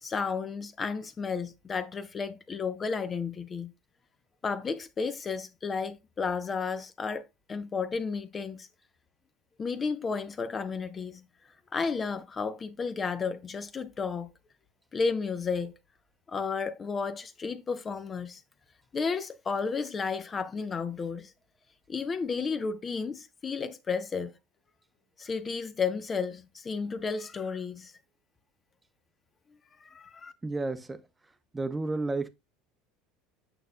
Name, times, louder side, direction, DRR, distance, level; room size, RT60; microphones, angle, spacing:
voice 1, 0.0-3.7 4.4-7.2 7.5-8.7 9.6-11.2 11.7-14.3 14.9-15.8 16.3-18.4 18.9-21.3 21.9-24.3 25.2-27.9 29.8-30.3, left 5 dB, 30° left, 0.7 m, -32 dB
voice 2, 30.4-31.0 31.5-32.3, right 3 dB, 15° right, 0.8 m, -31 dB
8.8 x 6.6 x 2.2 m
figure-of-eight pair, 70°, 0 cm